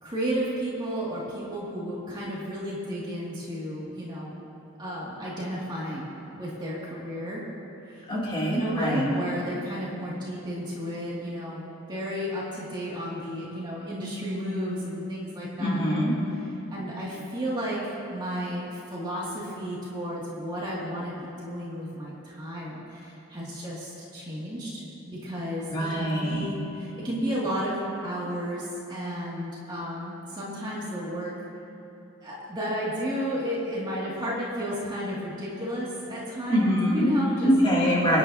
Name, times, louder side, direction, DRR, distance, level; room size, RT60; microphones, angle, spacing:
voice 1, 0.0-4.4 4.8-7.4 7.8-8.1 8.5-16.1 16.7-25.7 26.0-31.5 32.2-37.5, equal, 20° right, -7 dB, 2.5 m, -33 dB
voice 2, 8.1-9.1 15.6-16.1 25.7-26.5 36.5-37.1 37.4-38.2, equal, 25° left, -6 dB, 3.1 m, -23 dB
26.0 x 10.0 x 2.9 m, 3.0 s
head